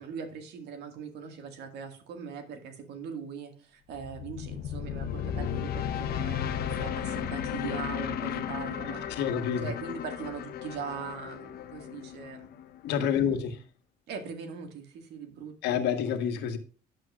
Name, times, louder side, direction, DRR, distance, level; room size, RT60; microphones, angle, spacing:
voice 1, 0.0-9.3 9.6-12.5 13.1-13.6 14.1-15.8, right 6 dB, 80° right, 2.0 m, -41 dB
sound 1, 3.9-13.1, left 9 dB, 65° left, 1.0 m, -35 dB
voice 2, 9.2-9.7 12.8-13.5 15.6-16.6, left 8 dB, 85° left, 1.4 m, -28 dB
10.5 x 8.0 x 2.4 m
cardioid pair, 110°, 17 cm